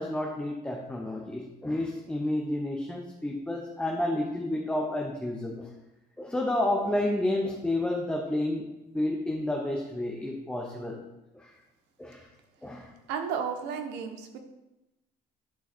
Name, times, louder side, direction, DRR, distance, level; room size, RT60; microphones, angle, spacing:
voice 1, 0.0-5.7 6.2-8.7 8.9-11.0 11.3-11.5 12.0-12.2 12.6-12.9, left 1 dB, 5° left, 0 dB, 0.9 m, -30 dB
voice 2, 13.1-14.4, right 6 dB, 85° right, 5 dB, 1.1 m, -33 dB
11.0 x 3.9 x 4.3 m, 0.96 s
cardioid pair, 110°, 17 cm